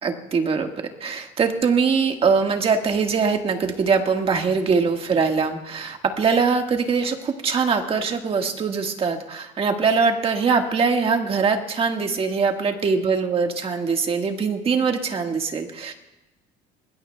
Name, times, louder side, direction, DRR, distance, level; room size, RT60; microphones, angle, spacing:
voice 1, 0.0-0.7 1.0-16.0, right 5 dB, 30° right, 4 dB, 1.7 m, -22 dB
26.0 x 20.0 x 2.3 m, 1.0 s
cardioid pair, 140°, 18 cm